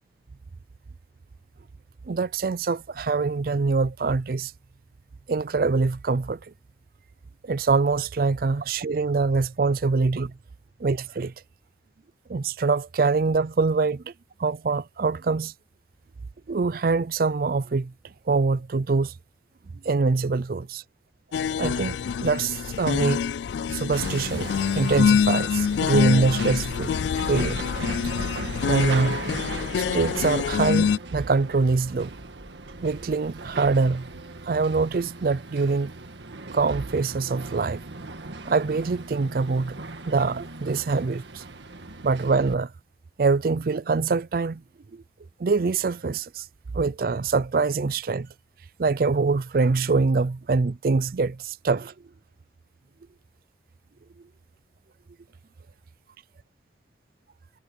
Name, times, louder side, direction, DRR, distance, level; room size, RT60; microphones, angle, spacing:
voice 1, 2.1-4.5 5.3-6.4 7.4-10.3 10.8-11.3 12.3-14.1 14.4-15.5 16.5-17.9 18.3-19.1 19.8-20.8 21.6-23.2 23.7-27.0 27.3-27.6 28.6-29.2 29.8-32.1 32.8-34.1 34.4-35.9 36.5-37.8 38.5-39.8 40.1-41.4 42.0-42.7 43.2-44.6 44.9-45.0 45.4-46.4 46.7-48.3 48.8-51.9, right 4 dB, 55° right, 0.4 m, -24 dB
sound 1, 21.3-31.0, left 7 dB, 75° left, 0.3 m, -25 dB
Hammer, 23.9-42.5, right 3 dB, 80° right, 1.7 m, -38 dB
head